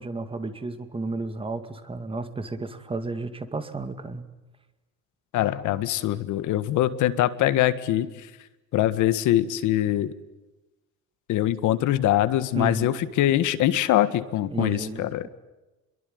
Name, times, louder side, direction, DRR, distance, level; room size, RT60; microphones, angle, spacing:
voice 1, 0.0-4.2 12.5-12.9 14.5-15.3, right 3 dB, 15° right, 10 dB, 2.1 m, -32 dB
voice 2, 5.3-8.3 8.7-10.1 11.3-15.2, left 13 dB, 65° left, 13 dB, 1.7 m, -23 dB
27.5 x 22.5 x 9.6 m, 1.1 s
cardioid pair, 145°, 32 cm